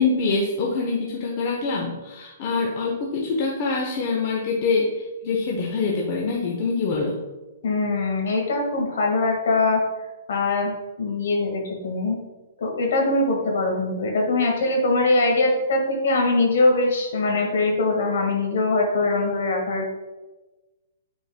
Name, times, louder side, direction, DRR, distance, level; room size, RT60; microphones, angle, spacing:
voice 1, 0.0-7.2, left 4 dB, 45° left, -1 dB, 1.0 m, -25 dB
voice 2, 7.6-9.8 10.3-12.2 12.6-19.8, left 2 dB, 65° left, 0 dB, 1.8 m, -22 dB
9.1 x 4.5 x 2.3 m, 1.1 s
hypercardioid pair, 125°, 0 cm